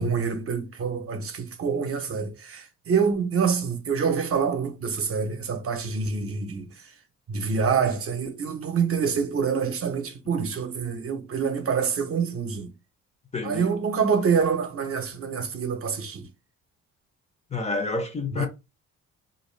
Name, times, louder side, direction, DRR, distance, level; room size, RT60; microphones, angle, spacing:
voice 1, 0.0-6.7 7.3-12.7 13.4-16.3 18.3-18.5, right 6 dB, 50° right, 0.7 m, -26 dB
voice 2, 13.3-13.7 17.5-18.5, left 3 dB, 20° left, 0.6 m, -28 dB
2.6 x 2.2 x 3.2 m
cardioid pair, 90°, 30 cm